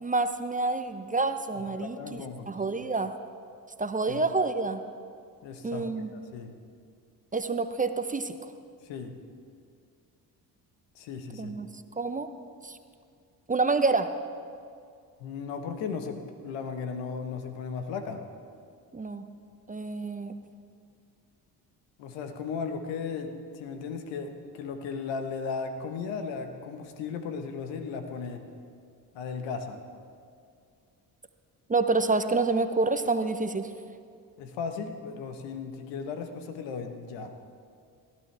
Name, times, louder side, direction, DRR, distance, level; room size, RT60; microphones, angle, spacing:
voice 1, 0.0-3.1 3.8-4.8 5.6-6.1 7.3-8.4 11.3-11.7 12.0-12.3 12.6-12.8 13.5-14.1 18.9-19.2 19.7-20.3 31.7-33.7, right 3 dB, 20° right, 9 dB, 0.6 m, -28 dB
voice 2, 1.5-2.5 4.1-4.2 5.4-6.5 8.8-9.1 10.9-11.6 15.2-18.2 22.0-28.4 29.1-29.8 34.4-37.3, left 5 dB, 80° left, 6 dB, 1.2 m, -36 dB
18.5 x 12.5 x 3.4 m, 2.3 s
supercardioid pair, 60°, 44 cm